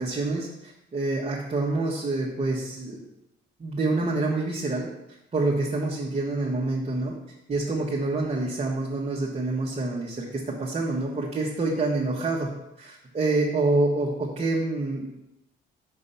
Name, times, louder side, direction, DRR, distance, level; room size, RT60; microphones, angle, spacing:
voice 1, 0.0-3.0 3.6-4.9 5.3-7.2 7.5-15.2, right 2 dB, 35° right, -4 dB, 1.3 m, -27 dB
5.6 x 4.7 x 5.7 m, 0.88 s
cardioid pair, 90°, 20 cm